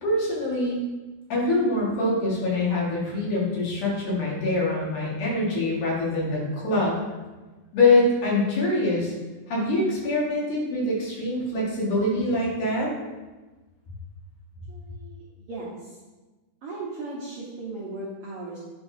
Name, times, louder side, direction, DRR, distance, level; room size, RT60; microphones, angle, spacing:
voice 1, 0.0-0.8 1.3-6.9 7.7-9.1 9.5-12.9, left 2 dB, 75° left, -5 dB, 3.1 m, -24 dB
voice 2, 14.7-16.0 16.6-18.6, right 2 dB, 65° right, -6 dB, 1.5 m, -37 dB
8.4 x 5.0 x 2.6 m, 1.2 s
omnidirectional pair, 3.7 m